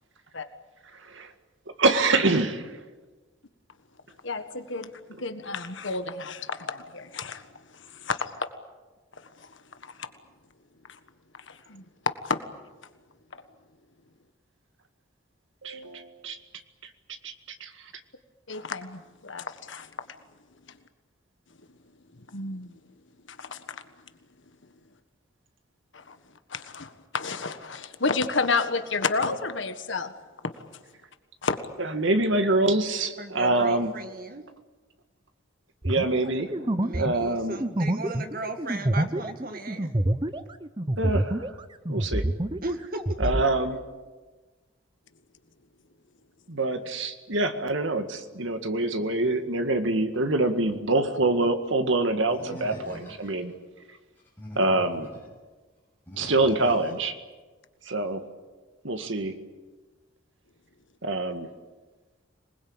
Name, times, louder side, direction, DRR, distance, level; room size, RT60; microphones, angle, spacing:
voice 1, 1.8-2.8 15.6-16.4 17.2-17.3 17.6-17.7 31.8-33.9 35.8-36.7 36.9-37.6 41.0-41.5 41.9-42.2 43.2-43.8 46.5-53.5 54.6-55.1 56.2-57.2 57.9-58.2 58.8-59.3 61.0-61.5, right 2 dB, 70° right, 7 dB, 2.0 m, -25 dB
voice 2, 4.2-4.9 5.2-7.4 7.9-8.3 9.4-9.5 9.8-9.9 11.5-12.4 18.5-19.9 22.3-22.7 23.4-23.8 25.9-26.2 26.5-30.1 31.4-31.6, left 4 dB, 65° left, 9 dB, 1.6 m, -30 dB
voice 3, 33.2-34.5 36.8-39.9 42.6-43.2, right 2 dB, 45° right, 7 dB, 2.0 m, -36 dB
sound 1, 35.8-41.6 41.9-43.5, right 1 dB, 20° right, 0.8 m, -27 dB
Animal, 52.3-53.5 54.2-55.3 56.1-57.1, equal, 10° left, 6.6 m, -43 dB
26.5 x 20.5 x 8.9 m, 1.3 s
head